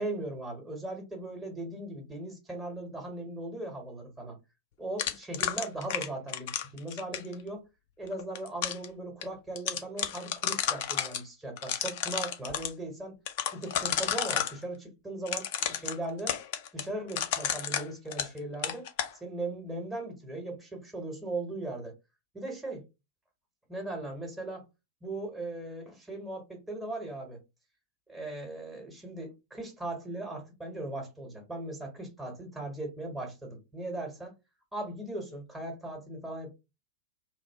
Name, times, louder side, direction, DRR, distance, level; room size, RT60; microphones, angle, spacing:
voice 1, 0.0-4.4 4.8-7.6 8.0-13.2 13.5-16.4 16.7-18.9 19.2-21.9 22.3-22.8 23.7-24.6 25.0-27.4 28.1-34.3 34.7-36.5, right 2 dB, 10° right, 1.1 m, -38 dB
sound 1, 5.0-7.3 8.1-8.9 9.2-9.3 9.6-11.2 11.6-12.7 13.3-14.6 15.3-18.4 18.6-19.1, left 9 dB, 50° left, 0.4 m, -31 dB
2.6 x 2.0 x 3.4 m
figure-of-eight pair, 90°, 0 cm